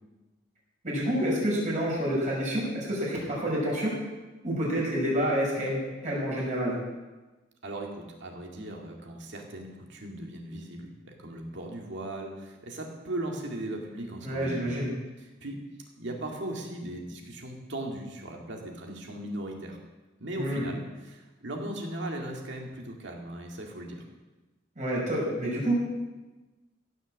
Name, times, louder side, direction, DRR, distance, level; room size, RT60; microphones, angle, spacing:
voice 1, 0.8-4.0 4.4-6.8 14.2-15.0 20.3-20.6 24.8-25.7, equal, 40° right, -4 dB, 5.7 m, -28 dB
voice 2, 7.6-14.9 15.2-15.6 16.0-19.8 20.2-24.0, right 1 dB, 65° right, 1 dB, 2.2 m, -38 dB
16.0 x 6.8 x 7.5 m, 1.2 s
head